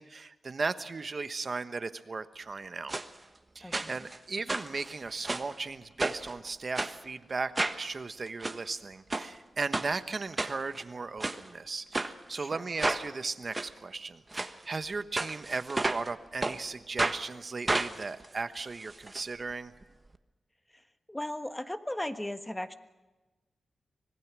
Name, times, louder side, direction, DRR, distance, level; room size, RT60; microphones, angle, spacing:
voice 1, 0.0-2.9 3.5-19.7, right 4 dB, 50° right, 10 dB, 1.2 m, -36 dB
sound 1, 2.9-3.1 3.7-4.2 4.5-5.5 6.0-6.3 6.7-6.9 7.5-7.8 8.3-8.6 9.1-9.3 9.7-9.9 10.4-10.8 11.2-11.4 11.9-12.1 12.8-13.0 13.5-13.7 14.3-14.5 15.2-16.1 16.4-16.6 17.0-17.2 17.7-19.2 19.5-19.6 19.8-19.9, right 2 dB, 30° right, 1.3 m, -31 dB
voice 2, 3.6-3.9 12.3-12.6 20.7-20.8 21.1-22.7, left 1 dB, 15° left, 8 dB, 1.4 m, -37 dB
25.5 x 19.0 x 6.2 m, 1.2 s
cardioid pair, 65°, 0 cm